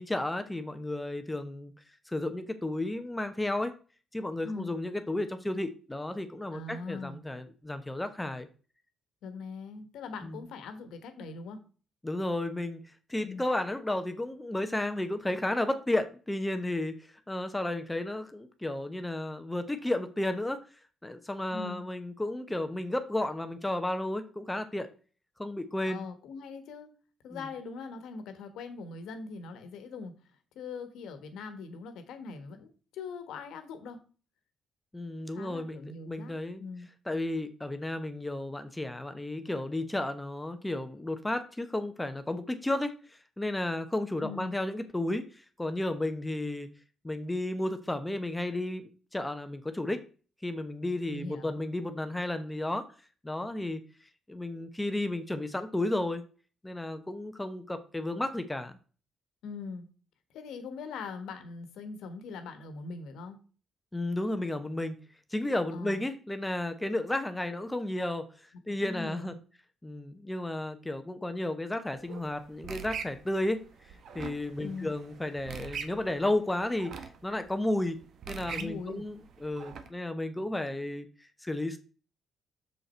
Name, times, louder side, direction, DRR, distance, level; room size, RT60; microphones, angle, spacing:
voice 1, 0.0-1.7 2.1-3.7 4.1-8.5 10.2-10.4 12.0-20.6 21.0-24.9 25.4-26.1 27.3-27.4 34.9-36.6 37.1-46.7 47.0-50.0 50.4-52.9 53.2-53.8 54.3-56.2 56.6-58.8 63.9-65.0 65.3-68.3 68.7-69.3 69.8-73.6 74.1-78.0 78.3-81.8, left 1 dB, 10° left, 8 dB, 0.7 m, -33 dB
voice 2, 4.4-4.7 6.5-7.2 9.2-11.6 13.2-13.4 21.5-21.8 25.8-26.9 27.2-30.1 30.5-34.0 35.3-36.9 44.2-44.5 51.1-51.6 59.4-59.9 60.3-63.4 65.7-66.0 68.7-69.4 74.6-74.9 78.5-79.0, left 4 dB, 85° left, 8 dB, 1.3 m, -41 dB
sound 1, 71.9-79.9, right 7 dB, 65° right, 0.9 m, -44 dB
6.5 x 5.4 x 4.3 m, 0.38 s
cardioid pair, 90°, 0 cm